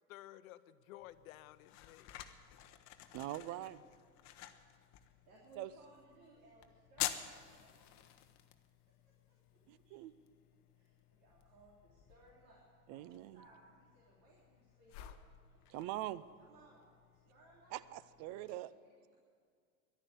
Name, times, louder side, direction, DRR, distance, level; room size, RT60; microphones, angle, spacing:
voice 1, 0.1-2.1, left 14 dB, 65° left, 0.7 m, -54 dB
sound 1, 1.0-18.6, left 13 dB, 40° left, 0.9 m, -50 dB
voice 2, 3.1-3.8 5.6-5.7 9.7-10.1 12.9-13.4 15.7-16.2 17.7-18.7, right 14 dB, 35° right, 0.5 m, -43 dB
voice 3, 5.3-7.3 7.6-8.1 9.0-10.1 10.7-15.1 15.5-15.6 16.4-16.8 17.1-17.8 18.4-19.2, right 2 dB, 60° right, 3.4 m, -64 dB
11.5 x 9.7 x 9.4 m
hypercardioid pair, 110°, 45 cm